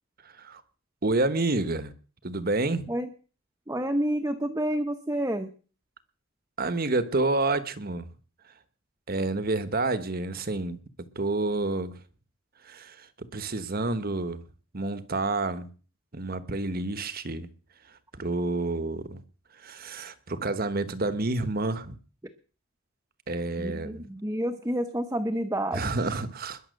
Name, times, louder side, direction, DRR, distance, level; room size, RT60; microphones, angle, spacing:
voice 1, 1.0-1.9 2.2-2.9 6.6-8.1 9.1-10.8 11.1-12.0 12.6-14.4 14.7-15.7 16.1-17.5 18.2-19.2 19.6-22.0 23.3-24.1 25.7-26.6, right 2 dB, 45° right, 12 dB, 1.2 m, -29 dB
voice 2, 3.7-5.5 23.6-25.9, right 1 dB, 15° right, 6 dB, 0.9 m, -29 dB
21.0 x 7.3 x 6.5 m, 0.40 s
head